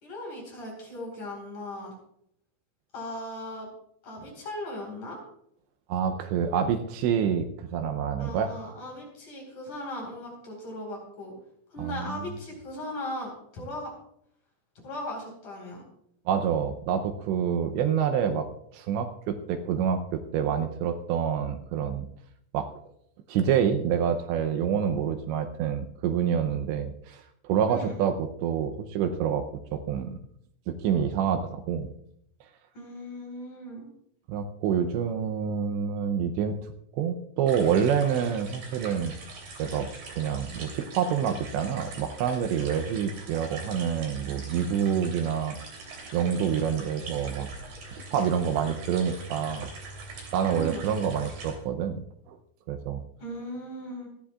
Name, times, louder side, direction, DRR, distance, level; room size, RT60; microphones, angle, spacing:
voice 1, 0.0-1.9 2.9-3.7 4.0-5.2 8.2-11.3 11.7-13.9 14.8-15.8 27.7-28.0 32.7-33.9 50.5-50.9 53.2-54.1, left 1 dB, 45° left, -1 dB, 5.8 m, -38 dB
voice 2, 5.9-8.7 11.8-12.2 16.3-18.5 18.7-22.1 22.5-22.7 23.3-29.5 29.7-30.2 30.7-31.9 34.3-36.6 36.9-39.1 39.6-45.6 46.1-47.5 47.9-49.7 50.3-52.4 52.7-53.0, right 8 dB, 80° right, 7 dB, 2.9 m, -27 dB
sound 1, 37.5-51.6, right 3 dB, 50° right, 4.4 m, -43 dB
27.5 x 10.0 x 2.4 m, 0.73 s
omnidirectional pair, 5.4 m